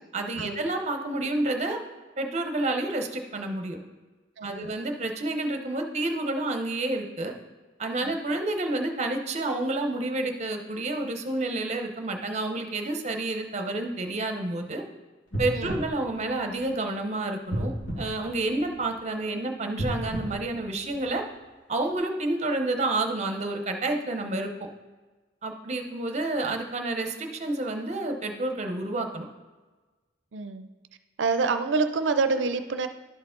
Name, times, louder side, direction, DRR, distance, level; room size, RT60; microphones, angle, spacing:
voice 1, 0.1-1.8 2.2-3.8 4.4-7.3 7.8-14.8 15.4-21.2 21.7-24.7 25.4-29.3, right 2 dB, 40° right, 5 dB, 0.7 m, -29 dB
voice 2, 4.4-4.7 8.0-8.2 15.6-15.8 30.3-30.7 31.2-32.9, right 4 dB, 85° right, 9 dB, 0.5 m, -27 dB
sound 1, 15.3-16.9 17.5-19.0 19.7-21.4 21.9-22.0, equal, 85° left, 2.4 m, -34 dB
11.5 x 4.6 x 3.8 m, 1.3 s
head